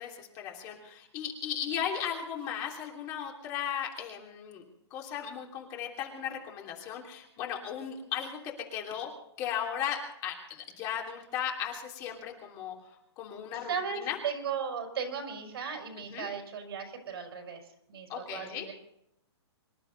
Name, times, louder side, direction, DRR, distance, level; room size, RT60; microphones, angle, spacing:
voice 1, 0.0-4.6 4.9-9.1 9.4-12.7 13.2-14.2 16.0-16.3 18.1-18.7, left 9 dB, 25° left, 0 dB, 3.0 m, -36 dB
voice 2, 13.7-17.6 17.9-18.7, right 6 dB, 60° right, 4 dB, 5.2 m, -36 dB
25.5 x 12.0 x 4.0 m, 0.77 s
hypercardioid pair, 155°, 14 cm